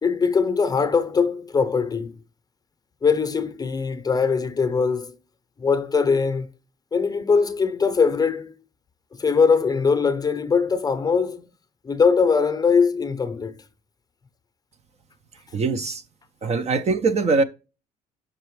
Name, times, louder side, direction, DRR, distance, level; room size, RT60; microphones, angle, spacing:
voice 1, 0.0-2.1 3.0-5.2 5.6-6.5 6.9-8.5 9.2-11.4 11.8-13.6, left 5 dB, 20° left, 0.7 m, -21 dB
voice 2, 15.5-16.0 16.4-17.4, right 4 dB, 40° right, 0.6 m, -22 dB
6.7 x 5.9 x 3.1 m
cardioid pair, 110°, 17 cm